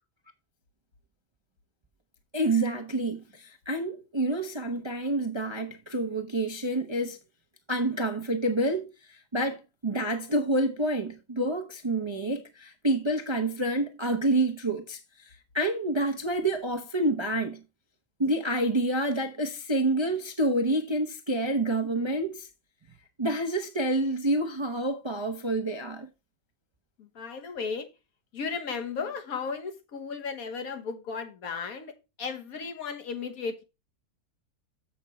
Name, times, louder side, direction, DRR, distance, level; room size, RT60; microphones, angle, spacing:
voice 1, 2.3-7.2 7.7-17.6 18.2-22.5 23.2-26.1, right 1 dB, 30° right, 0.5 m, -28 dB
voice 2, 27.0-27.9 28.3-31.9 32.2-33.6, left 5 dB, 65° left, 1.5 m, -35 dB
7.3 x 6.0 x 4.2 m
omnidirectional pair, 1.6 m